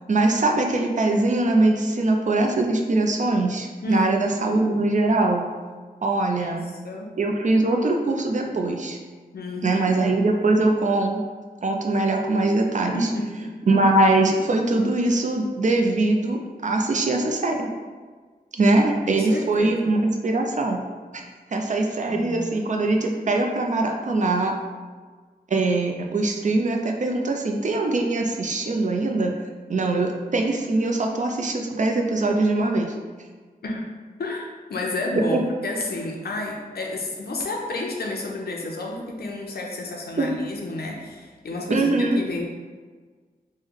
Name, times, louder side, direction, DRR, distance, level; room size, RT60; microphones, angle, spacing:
voice 1, 0.1-5.4 6.0-6.7 7.2-9.0 9.6-11.2 11.6-13.1 13.7-17.7 18.5-20.8 21.1-21.2 21.5-24.6 25.5-29.4 29.7-32.9 35.1-35.4 40.2-40.4 41.7-42.2, right 2 dB, 50° right, 2 dB, 0.4 m, -22 dB
voice 2, 3.8-4.7 6.3-6.6 6.8-7.1 9.3-10.0 12.8-13.5 19.0-20.0 22.1-22.7 33.6-33.9 34.2-42.4, left 2 dB, 85° left, 0 dB, 0.5 m, -31 dB
3.1 x 2.1 x 3.6 m, 1.5 s
wide cardioid pair, 85°, 16 cm